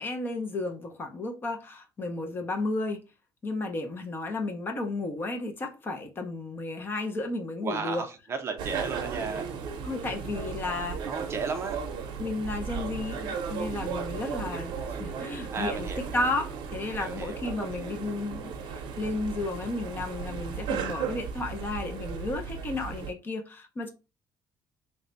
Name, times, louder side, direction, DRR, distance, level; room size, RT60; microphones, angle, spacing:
voice 1, 0.0-3.0 3.4-8.0 9.8-11.0 12.2-23.9, left 2 dB, 25° left, 0.6 m, -33 dB
voice 2, 7.6-9.5 11.1-11.8 15.5-16.2 16.9-17.9, right 5 dB, 30° right, 0.6 m, -34 dB
sound 1, 8.6-23.1, right 6 dB, 70° right, 0.6 m, -36 dB
3.2 x 2.2 x 3.8 m
cardioid pair, 160°, 8 cm